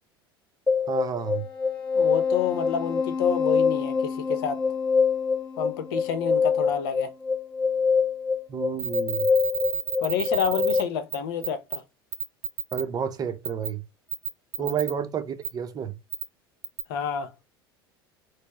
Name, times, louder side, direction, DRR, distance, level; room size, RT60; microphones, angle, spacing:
sound 1, 0.7-10.8, left 5 dB, 10° left, 1.1 m, -25 dB
voice 1, 0.9-1.5 8.5-9.3 12.7-13.8 14.6-15.9, right 8 dB, 30° right, 0.7 m, -30 dB
voice 2, 2.0-4.6 5.6-7.1 10.0-11.8 14.6-14.7 16.9-17.3, left 8 dB, 65° left, 0.8 m, -28 dB
sound 2, 8.8-10.8 11.1-11.2 11.4-11.8 12.1-12.8 13.5-13.7 14.1-14.9 15.4-15.5 16.1-16.2 16.6-16.8, right 6 dB, 75° right, 0.6 m, -30 dB
4.3 x 2.1 x 3.0 m
figure-of-eight pair, 75°, 13 cm